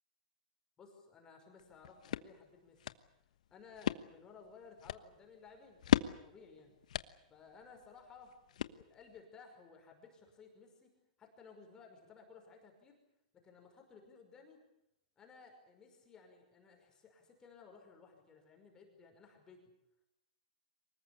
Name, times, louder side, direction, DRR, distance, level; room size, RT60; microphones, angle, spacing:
voice 1, 0.8-2.8 3.5-6.8 7.3-8.4 8.7-10.9 11.2-13.0 13.4-14.6 15.2-19.7, left 5 dB, 15° left, 2 dB, 5.6 m, -58 dB
sound 1, 1.6-9.2, left 10 dB, 65° left, 1.2 m, -39 dB
24.5 x 21.0 x 8.6 m, 0.81 s
hypercardioid pair, 150°, 4 cm